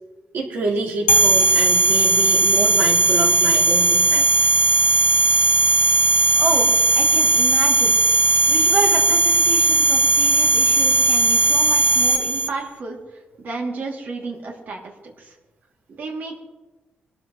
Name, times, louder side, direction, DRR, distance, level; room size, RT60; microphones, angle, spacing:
voice 1, 0.3-4.3 5.3-5.5, right 3 dB, 90° right, -5 dB, 4.4 m, -27 dB
sound 1, 1.1-12.5, right 2 dB, 70° left, 1.0 m, -17 dB
voice 2, 6.4-7.9 8.5-15.3 15.9-16.4, right 3 dB, 55° right, -1 dB, 2.8 m, -30 dB
23.5 x 13.5 x 3.2 m, 1.1 s
wide cardioid pair, 160°, 3 cm